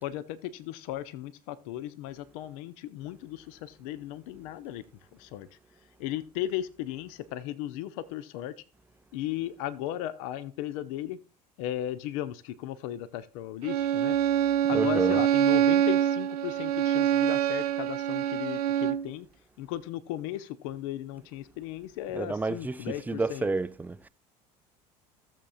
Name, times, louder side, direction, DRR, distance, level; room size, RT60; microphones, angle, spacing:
voice 1, 0.0-4.8 5.1-5.5 6.0-8.5 9.1-11.2 11.6-14.2 14.7-19.3 19.6-23.5, left 13 dB, 55° left, 0.6 m, -36 dB
Bowed string instrument, 13.6-19.1, right 11 dB, 70° right, 0.5 m, -25 dB
voice 2, 14.7-15.2 22.1-24.1, right 3 dB, 10° right, 0.4 m, -30 dB
16.0 x 7.2 x 2.4 m
figure-of-eight pair, 65°, 21 cm